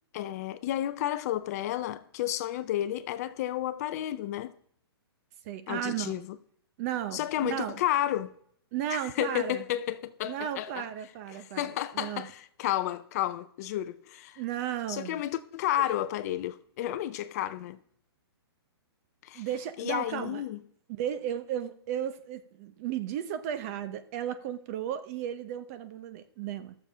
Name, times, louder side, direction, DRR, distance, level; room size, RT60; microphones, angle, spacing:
voice 1, 0.1-4.5 5.7-6.4 7.1-8.3 8.9-10.9 11.3-14.4 14.9-17.8 19.2-19.4 19.8-20.6, left 12 dB, 40° left, 0.5 m, -32 dB
voice 2, 5.4-6.1 6.8-7.8 8.7-9.6 10.2-12.3 14.4-15.2 19.3-20.4 20.9-26.7, right 10 dB, 35° right, 0.8 m, -34 dB
13.5 x 7.0 x 4.9 m
hypercardioid pair, 150°, 14 cm